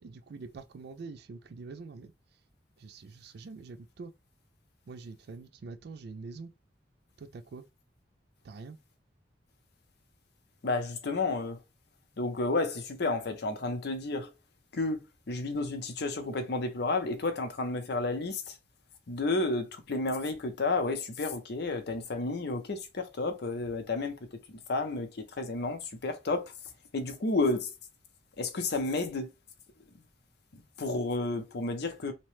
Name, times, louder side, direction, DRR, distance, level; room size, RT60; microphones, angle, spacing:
voice 1, 0.0-2.1 2.8-4.1 4.9-6.5 7.2-7.6 8.4-8.8, right 4 dB, 65° right, 0.4 m, -45 dB
voice 2, 10.6-11.6 12.2-14.3 14.7-18.6 19.1-24.2 24.5-26.5 26.9-27.7 28.4-29.3 30.5-32.1, left 3 dB, 65° left, 0.6 m, -31 dB
2.8 x 2.1 x 3.1 m
head